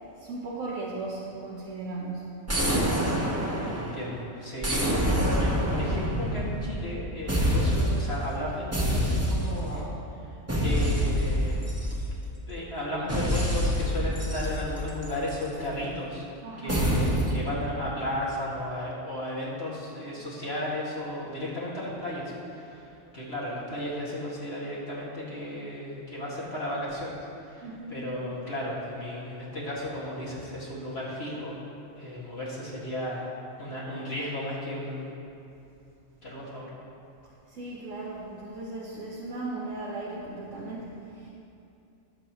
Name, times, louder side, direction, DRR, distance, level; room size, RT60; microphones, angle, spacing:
voice 1, 0.2-2.2 16.4-16.9 27.6-28.0 37.5-41.3, right 2 dB, 75° right, -6 dB, 1.5 m, -37 dB
sound 1, 2.5-4.1 4.6-7.0 7.3-8.1 8.7-9.8 10.5-12.4 13.1-15.5 16.7-17.4, equal, 10° right, 1.4 m, -26 dB
voice 2, 3.7-9.8 10.6-11.6 12.5-16.3 16.6-22.9 23.1-27.1 27.5-31.6 31.9-33.3 33.6-35.1 36.2-36.7, left 1 dB, 50° left, -7 dB, 2.4 m, -34 dB
18.5 x 6.8 x 3.1 m, 2.7 s
omnidirectional pair, 1.3 m